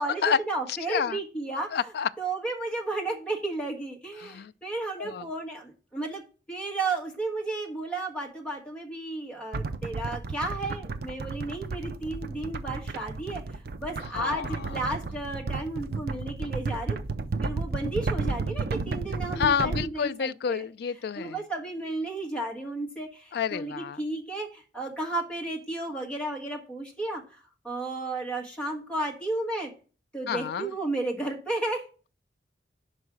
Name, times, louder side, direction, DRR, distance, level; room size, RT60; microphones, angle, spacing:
voice 1, 0.0-1.9 2.2-6.2 6.5-17.0 17.4-20.6 21.2-29.7 30.1-31.8, right 2 dB, 5° left, 1.5 m, -33 dB
voice 2, 0.7-1.2 1.7-2.1 4.2-4.5 5.0-5.3 14.1-14.8 19.4-21.4 23.3-24.0 30.3-30.7, left 7 dB, 60° left, 0.3 m, -29 dB
sound 1, 9.5-19.8, right 3 dB, 55° right, 0.5 m, -32 dB
5.4 x 4.8 x 6.2 m
head